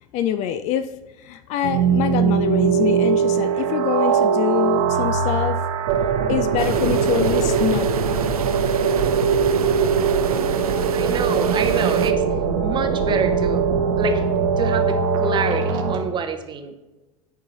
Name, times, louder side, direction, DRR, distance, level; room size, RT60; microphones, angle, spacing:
voice 1, 0.1-0.9 1.2-5.6 6.3-8.0, left 10 dB, 40° left, 11 dB, 0.4 m, -25 dB
sound 1, 1.6-16.0, right 6 dB, 60° right, 0.9 m, -21 dB
sound 2, 6.6-12.1, right 7 dB, 80° right, 0.5 m, -30 dB
voice 2, 10.9-12.2 12.6-13.7 14.0-14.2 14.6-16.7, right 5 dB, 25° right, 6 dB, 0.8 m, -26 dB
10.5 x 3.7 x 3.1 m, 1.1 s
figure-of-eight pair, 85°, 19 cm